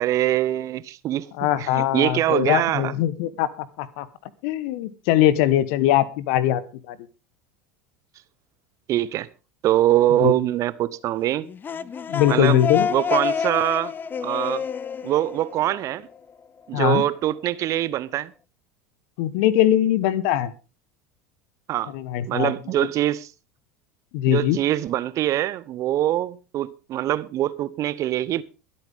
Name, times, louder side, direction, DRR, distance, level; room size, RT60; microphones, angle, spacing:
voice 1, 0.0-2.9 8.9-9.3 9.6-11.5 12.3-12.6 12.9-13.9 14.2-14.7 15.0-16.1 16.7-18.3 21.7-21.9 22.3-23.3 24.3-28.4, right 13 dB, 45° right, 0.8 m, -23 dB
voice 2, 1.4-4.1 4.4-6.6 6.9-7.0 10.2-10.3 12.1-12.9 16.7-17.0 19.2-20.5 21.9-22.5 24.1-24.6, left 12 dB, 60° left, 1.2 m, -21 dB
sound 1, 11.4-16.2, left 6 dB, 25° left, 0.7 m, -28 dB
23.0 x 8.7 x 3.6 m
hypercardioid pair, 80°, 8 cm